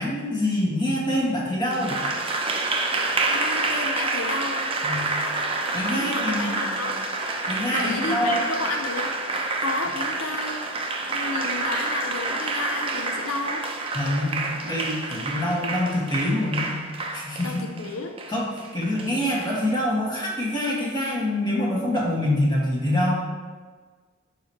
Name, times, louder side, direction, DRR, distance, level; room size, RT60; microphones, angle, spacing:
voice 1, 0.0-2.0 4.8-5.1 5.7-6.8 7.5-8.5 13.9-16.7 17.1-17.6 18.3-23.1, left 1 dB, 20° left, -5 dB, 1.8 m, -25 dB
Applause, 1.7-19.5, right 3 dB, 25° right, 0.7 m, -28 dB
voice 2, 3.3-4.7 5.9-7.0 7.6-9.1 9.6-10.7 11.1-13.7 17.4-18.2, left 3 dB, 80° left, 4 dB, 0.6 m, -31 dB
12.0 x 4.8 x 3.1 m, 1.5 s
head